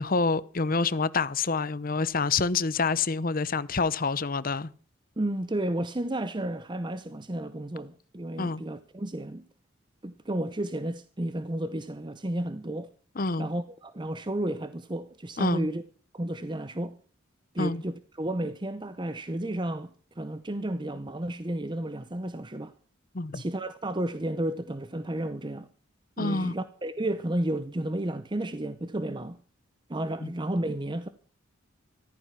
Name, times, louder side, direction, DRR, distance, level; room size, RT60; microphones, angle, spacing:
voice 1, 0.0-4.7 8.4-8.6 13.2-13.5 15.4-15.7 17.6-17.8 23.1-23.4 26.2-26.5 30.2-30.3, left 4 dB, 45° left, 0.8 m, -27 dB
voice 2, 5.2-9.5 10.0-12.9 13.4-15.8 16.1-17.0 17.5-22.7 23.3-25.7 26.2-29.4 29.9-31.1, right 1 dB, 20° right, 0.7 m, -32 dB
14.5 x 14.5 x 5.8 m
head